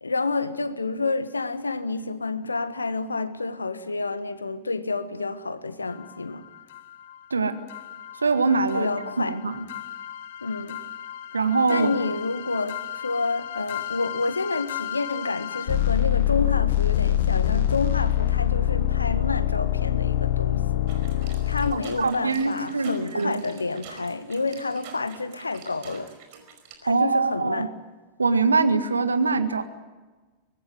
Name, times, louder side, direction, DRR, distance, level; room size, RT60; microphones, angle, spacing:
voice 1, 0.0-6.4 8.7-9.4 10.4-10.8 11.7-20.6 21.5-26.1 26.8-27.7, left 3 dB, 80° left, 1.4 m, -29 dB
sound 1, 5.9-6.0 6.7-6.8 7.1-7.2 7.7-22.1, left 12 dB, 55° left, 1.1 m, -26 dB
voice 2, 8.2-8.9 9.3-9.6 11.3-12.0 22.0-23.4 26.9-27.7 28.2-29.6, right 4 dB, 75° right, 1.7 m, -23 dB
sound 2, 20.9-26.8, right 7 dB, 50° right, 5.0 m, -46 dB
24.5 x 19.5 x 9.4 m
figure-of-eight pair, 90°, 0 cm